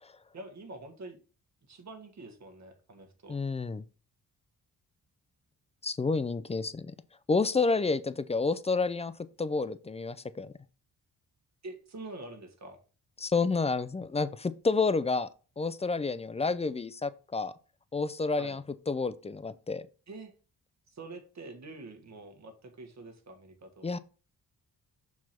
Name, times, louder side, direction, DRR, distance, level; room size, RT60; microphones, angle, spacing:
voice 1, 0.3-1.2 1.7-3.4 11.6-12.8 18.4-18.6 20.1-20.3 20.9-23.9, right 2 dB, 50° right, 5 dB, 1.6 m, -46 dB
voice 2, 3.3-3.8 5.8-6.9 7.3-9.1 9.4-10.5 13.2-15.3 15.6-17.5 17.9-19.8 23.8-24.0, left 4 dB, 20° left, 15 dB, 0.4 m, -29 dB
6.0 x 4.8 x 4.3 m, 0.37 s
cardioid pair, 90°, 37 cm